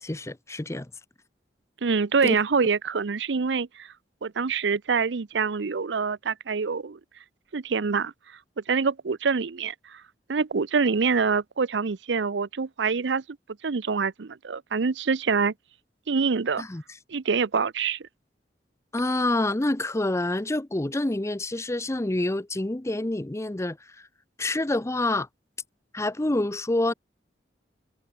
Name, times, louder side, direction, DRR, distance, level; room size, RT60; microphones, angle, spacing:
voice 1, 0.0-0.9 2.2-2.4 16.6-16.8 18.9-23.8 24.4-25.3 25.9-26.9, left 2 dB, 15° left, 0.7 m, -27 dB
voice 2, 1.8-3.9 4.2-7.0 7.5-8.1 8.7-10.0 10.3-13.2 13.6-15.5 16.1-16.6 17.1-18.1, right 5 dB, 80° right, 0.6 m, -25 dB
head